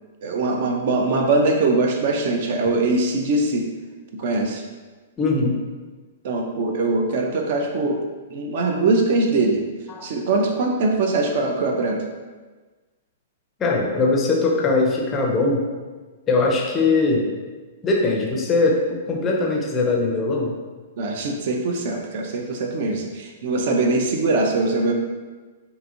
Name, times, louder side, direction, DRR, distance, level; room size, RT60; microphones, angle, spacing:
voice 1, 0.2-3.7 4.1-4.6 6.2-9.6 10.0-12.0 21.0-24.9, right 2 dB, 50° right, 2 dB, 0.3 m, -22 dB
voice 2, 5.2-5.6 9.9-10.1 13.6-15.7 16.3-17.3 17.8-20.5, left 3 dB, 20° left, -1 dB, 0.4 m, -21 dB
2.7 x 2.4 x 2.7 m, 1.3 s
figure-of-eight pair, 110°, 0 cm